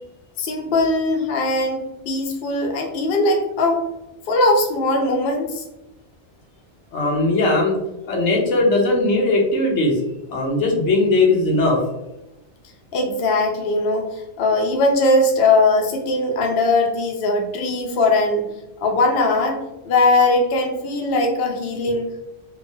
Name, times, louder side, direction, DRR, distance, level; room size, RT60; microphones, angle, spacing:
voice 1, 0.4-1.8 2.1-3.9 4.3-5.6 12.9-18.5 18.8-19.6 19.8-22.1, left 2 dB, 65° left, 2 dB, 0.7 m, -20 dB
voice 2, 6.9-7.8 8.1-11.8, left 2 dB, 85° left, -1 dB, 1.1 m, -19 dB
3.1 x 2.1 x 2.6 m, 0.92 s
omnidirectional pair, 1.2 m